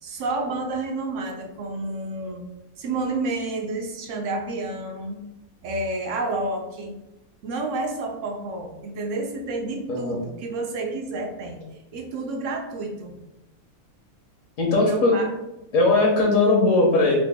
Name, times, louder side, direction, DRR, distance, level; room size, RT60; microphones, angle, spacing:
voice 1, 0.0-2.4 2.8-5.2 5.6-6.9 7.4-11.6 11.9-13.1 14.8-15.3, right 2 dB, 65° right, 3 dB, 0.8 m, -30 dB
voice 2, 9.9-10.2 14.6-15.2 15.7-17.2, left 2 dB, 65° left, -1 dB, 1.1 m, -19 dB
3.9 x 2.3 x 3.4 m, 0.95 s
omnidirectional pair, 1.5 m